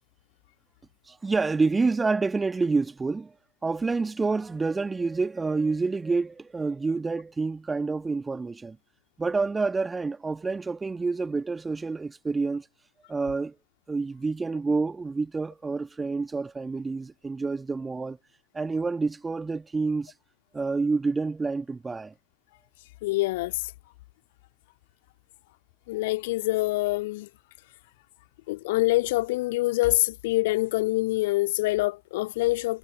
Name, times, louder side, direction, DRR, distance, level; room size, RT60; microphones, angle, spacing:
voice 1, 1.1-3.3 3.6-8.8 9.2-12.7 13.1-13.6 13.9-18.2 18.5-20.1 20.5-22.1, right 4 dB, 10° right, 1.8 m, -28 dB
voice 2, 23.0-23.6 25.9-27.3 28.5-32.8, left 19 dB, 50° left, 2.3 m, -25 dB
figure-of-eight pair, 90°, 0 cm